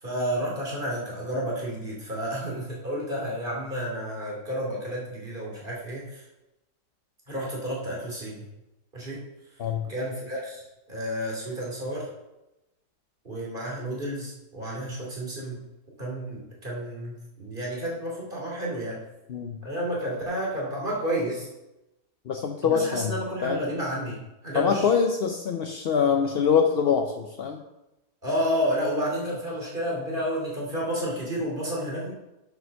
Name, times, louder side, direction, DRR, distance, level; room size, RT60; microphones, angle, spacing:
voice 1, 0.0-6.3 7.3-8.4 8.9-9.2 9.8-10.6 10.9-12.1 13.2-15.6 16.0-19.0 19.6-21.5 22.6-24.2 24.4-24.9 28.2-32.1, equal, 30° right, -3 dB, 2.7 m, -31 dB
voice 2, 22.3-23.1 23.4-23.6 24.5-27.6, left 6 dB, 60° left, 4 dB, 0.6 m, -24 dB
7.8 x 5.7 x 6.3 m, 0.96 s
omnidirectional pair, 1.8 m